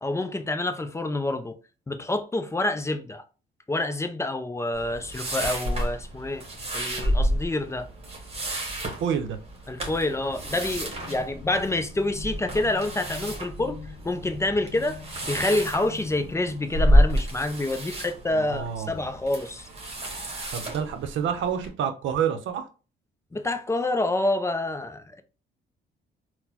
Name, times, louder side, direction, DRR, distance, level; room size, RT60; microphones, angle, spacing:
voice 1, 0.0-1.6 1.9-3.2 3.7-6.5 6.7-7.9 9.7-19.7 23.3-25.2, left 2 dB, 15° left, 0.4 m, -27 dB
sound 1, 4.7-21.7, equal, 30° right, 1.1 m, -29 dB
voice 2, 9.0-9.4 18.3-19.0 20.5-22.7, right 8 dB, 75° right, 0.6 m, -28 dB
sound 2, 9.9-18.1, left 4 dB, 75° left, 0.7 m, -44 dB
4.0 x 2.1 x 2.8 m
cardioid pair, 90°, 20 cm